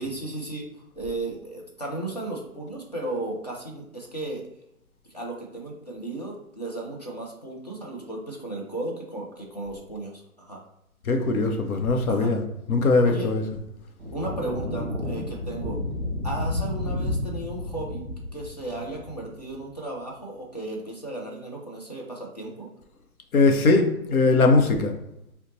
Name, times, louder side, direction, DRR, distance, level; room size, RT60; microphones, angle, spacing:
voice 1, 0.0-4.5 5.1-10.6 12.1-12.4 13.0-13.3 14.1-15.8 16.2-18.0 18.3-22.7, right 2 dB, 30° left, -1 dB, 0.4 m, -35 dB
voice 2, 11.1-12.4 12.7-13.4 23.3-25.0, left 3 dB, 75° left, 4 dB, 0.7 m, -20 dB
sound 1, 14.0-19.6, left 1 dB, 20° right, 1.0 m, -31 dB
2.7 x 2.1 x 4.0 m, 0.82 s
figure-of-eight pair, 145°, 43 cm